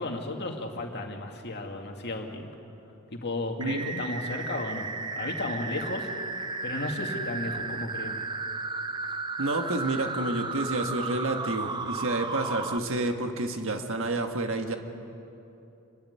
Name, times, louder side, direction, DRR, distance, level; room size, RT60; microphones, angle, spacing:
voice 1, 0.0-2.5 3.1-4.9 5.1-6.1 6.6-8.3, left 2 dB, 50° left, 2 dB, 2.2 m, -34 dB
sound 1, 3.6-12.8, right 3 dB, 20° right, 0.6 m, -34 dB
voice 2, 3.6-4.0 9.4-14.8, right 2 dB, 65° right, 5 dB, 1.5 m, -29 dB
27.0 x 12.0 x 9.6 m, 2.8 s
head